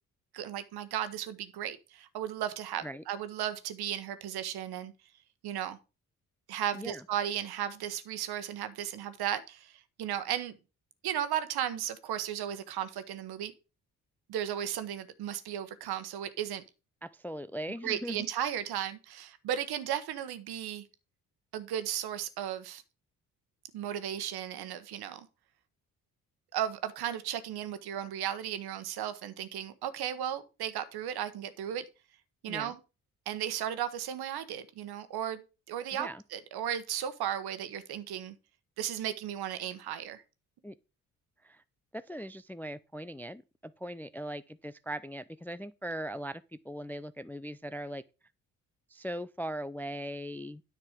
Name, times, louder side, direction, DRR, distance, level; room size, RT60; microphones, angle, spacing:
voice 1, 0.3-4.9 5.4-5.8 6.5-10.6 11.0-13.5 14.3-16.6 17.8-20.9 21.5-22.8 23.7-25.3 26.5-31.8 32.4-32.8 33.3-38.3 38.8-40.2, right 10 dB, 65° right, 1.2 m, -35 dB
voice 2, 17.0-18.2 32.5-32.7 36.0-36.2 40.6-40.7 41.4-41.6 41.9-48.0 48.9-50.6, equal, 5° left, 0.4 m, -39 dB
9.8 x 5.8 x 5.0 m
hypercardioid pair, 45°, 42 cm